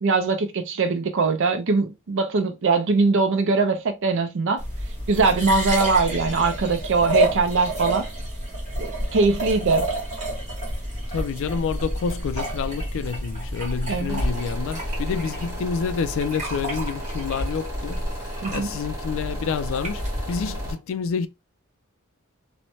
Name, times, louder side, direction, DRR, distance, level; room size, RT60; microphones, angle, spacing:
voice 1, 0.0-4.6 5.1-8.1 8.8-9.9 13.9-14.2 18.4-18.7, right 4 dB, 60° right, 0.5 m, -21 dB
sound 1, 4.6-20.7, right 1 dB, 35° right, 1.5 m, -29 dB
voice 2, 11.1-18.1 18.5-21.3, left 6 dB, 65° left, 0.3 m, -28 dB
sound 2, 14.1-20.8, equal, 15° right, 1.3 m, -38 dB
3.1 x 2.1 x 2.6 m
head